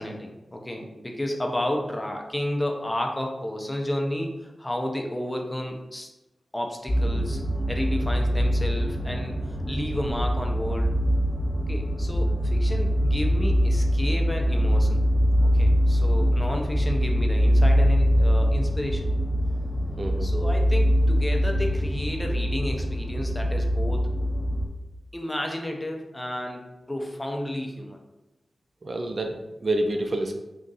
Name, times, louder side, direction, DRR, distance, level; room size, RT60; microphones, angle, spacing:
voice 1, 0.0-6.1 6.5-7.4 7.7-10.9 11.7-15.0 15.4-19.1 20.2-24.1 25.1-28.0, left 1 dB, 15° left, 2 dB, 0.6 m, -32 dB
sound 1, 6.9-24.7, equal, 50° left, 1.0 m, -23 dB
voice 2, 20.0-20.3 28.8-30.3, right 1 dB, 45° right, 4 dB, 0.4 m, -28 dB
3.6 x 2.5 x 4.0 m, 1.0 s
wide cardioid pair, 80°, 0 cm